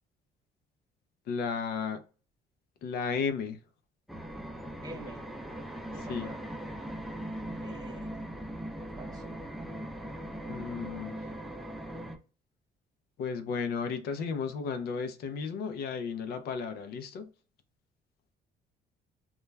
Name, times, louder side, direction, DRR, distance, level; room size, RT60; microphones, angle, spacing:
voice 1, 1.3-2.0 2.8-3.6 6.1-6.3 10.5-11.1 13.2-17.3, left 5 dB, 70° left, 0.4 m, -34 dB
sound 1, 4.1-12.2, right 1 dB, ahead, 0.3 m, -40 dB
voice 2, 4.8-5.3 5.9-6.4 7.6-8.2 9.0-9.4, right 2 dB, 20° right, 0.8 m, -46 dB
2.2 x 2.2 x 3.1 m
cardioid pair, 110°, 17 cm